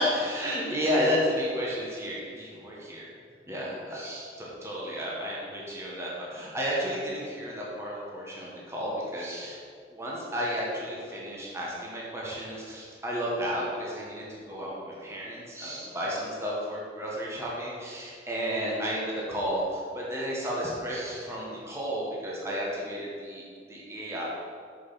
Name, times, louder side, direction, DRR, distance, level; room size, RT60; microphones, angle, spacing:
voice 1, 0.0-3.1 3.5-9.6 9.9-23.4 23.7-24.2, equal, 15° right, -5 dB, 1.6 m, -32 dB
6.7 x 6.3 x 5.8 m, 2.2 s
head